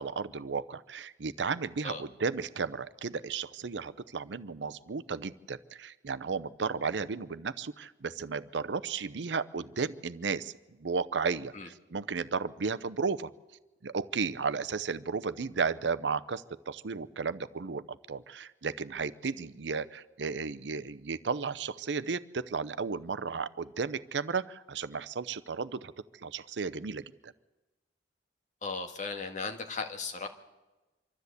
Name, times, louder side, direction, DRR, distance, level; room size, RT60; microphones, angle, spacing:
voice 1, 0.0-10.5 10.8-13.3 13.8-25.9 26.2-27.3, right 5 dB, 75° right, 15 dB, 0.7 m, -34 dB
voice 2, 28.6-30.3, left 4 dB, 45° left, 3 dB, 1.7 m, -36 dB
25.0 x 13.0 x 8.2 m, 1.1 s
head